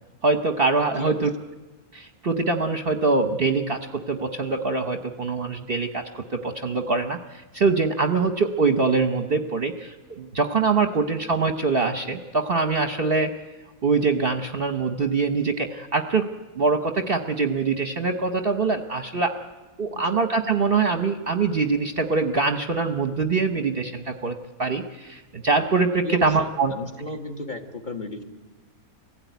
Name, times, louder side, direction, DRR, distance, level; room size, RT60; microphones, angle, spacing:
voice 1, 0.2-1.3 1.9-13.3 13.8-16.3 16.5-19.3 19.8-26.7, right 4 dB, 45° right, 6 dB, 1.0 m, -24 dB
voice 2, 0.9-1.3 19.9-20.1 26.0-28.2, left 3 dB, 30° left, 3 dB, 1.9 m, -34 dB
24.5 x 16.0 x 9.2 m, 1.2 s
omnidirectional pair, 1.6 m